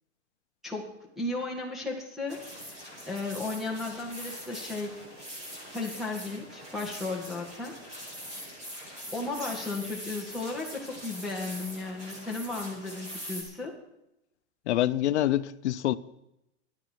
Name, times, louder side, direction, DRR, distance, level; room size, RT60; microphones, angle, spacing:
voice 1, 0.6-2.4 3.1-5.0 5.7-7.8 9.1-13.7, left 3 dB, ahead, 2.3 m, -35 dB
sound 1, 2.3-13.4, equal, 20° right, 6.5 m, -43 dB
voice 2, 14.7-15.9, left 13 dB, 70° left, 0.8 m, -26 dB
26.0 x 9.7 x 4.7 m
supercardioid pair, 165°, 35 cm